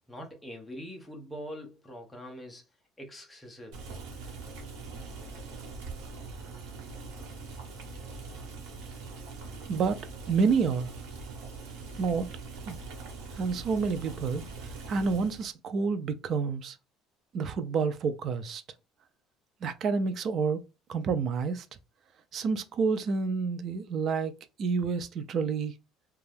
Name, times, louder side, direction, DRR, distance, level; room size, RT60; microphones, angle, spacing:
voice 1, 0.1-2.6 3.0-3.8, equal, 5° left, 0.6 m, -43 dB
Boiling, 3.7-15.5, right 4 dB, 75° right, 1.0 m, -42 dB
voice 2, 9.7-10.0 10.3-10.9 12.0-12.3 12.6-12.8 13.4-14.4 14.9-16.8 17.3-18.6 19.6-20.6 20.9-21.7 22.3-24.3 24.6-25.7, right 5 dB, 35° right, 0.3 m, -29 dB
2.6 x 2.3 x 3.3 m
cardioid pair, 165°, 0 cm